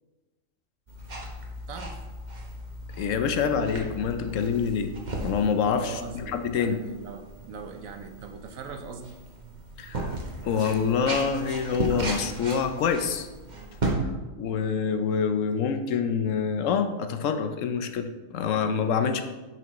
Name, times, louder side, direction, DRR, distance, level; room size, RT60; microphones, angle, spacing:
sound 1, 0.9-13.9, right 2 dB, 35° right, 1.1 m, -36 dB
voice 1, 3.0-4.9 5.2-6.8 9.8-10.2 10.4-13.3 14.4-19.2, left 6 dB, 70° left, 8 dB, 0.9 m, -26 dB
voice 2, 5.8-9.2, right 5 dB, 75° right, 6 dB, 1.2 m, -41 dB
10.5 x 6.0 x 3.0 m, 1.2 s
omnidirectional pair, 1.4 m